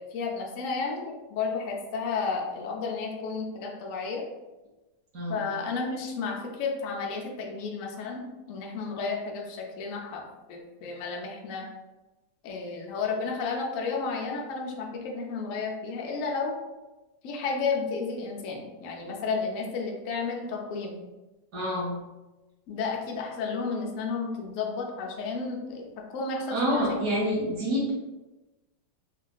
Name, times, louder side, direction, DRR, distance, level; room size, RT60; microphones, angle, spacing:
voice 1, 0.0-4.2 5.3-11.7 12.4-16.6 17.2-21.0 22.7-26.9, left 4 dB, 65° left, 0 dB, 0.8 m, -32 dB
voice 2, 21.5-22.0 26.5-27.9, equal, 60° right, -5 dB, 1.4 m, -27 dB
4.0 x 2.4 x 2.2 m, 1.1 s
omnidirectional pair, 1.9 m